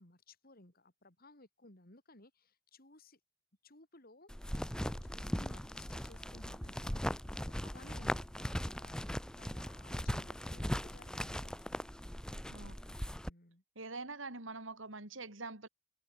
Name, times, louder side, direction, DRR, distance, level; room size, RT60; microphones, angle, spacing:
voice 1, 0.0-3.2 3.6-11.5 13.2-13.6, left 2 dB, 50° left, 4.8 m, -60 dB
sound 1, 4.3-13.3, equal, 5° left, 0.8 m, -39 dB
voice 2, 13.8-15.7, right 3 dB, 75° right, 3.9 m, -44 dB
open air
head